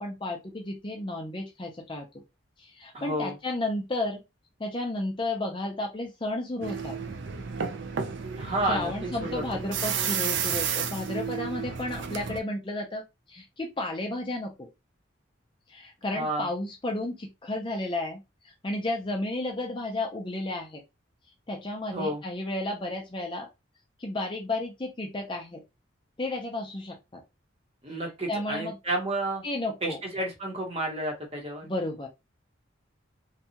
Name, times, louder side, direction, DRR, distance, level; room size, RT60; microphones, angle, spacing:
voice 1, 0.0-2.1 2.6-4.2 4.6-7.0 8.7-13.0 13.3-14.7 15.7-20.8 21.5-23.5 24.0-25.6 26.2-27.2 28.3-28.8 29.4-30.0 31.6-32.1, left 2 dB, 25° left, 2 dB, 0.5 m, -32 dB
voice 2, 2.9-3.3 8.4-8.9 9.2-9.4 16.1-16.5 21.9-22.2 27.8-29.4 29.8-31.6, right 1 dB, 30° right, 0 dB, 0.9 m, -30 dB
sound 1, 6.6-12.4, right 7 dB, 65° right, 0.4 m, -32 dB
2.7 x 2.3 x 2.7 m, 0.23 s
head